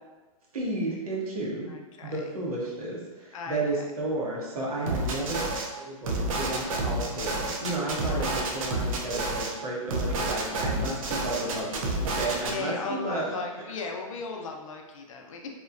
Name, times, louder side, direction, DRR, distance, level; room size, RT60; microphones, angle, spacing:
voice 1, 0.5-1.7 2.0-5.4 5.7-13.2, right 2 dB, 90° right, -4 dB, 0.9 m, -32 dB
voice 2, 1.6-2.4 3.3-3.9 7.9-8.3 10.4-10.8 12.4-15.5, left 4 dB, 65° left, 2 dB, 0.5 m, -37 dB
sound 1, 4.9-5.7 6.0-9.5 9.9-12.5, right 2 dB, 70° right, 0.5 m, -29 dB
3.0 x 2.1 x 2.4 m, 1.2 s
hypercardioid pair, 135°, 18 cm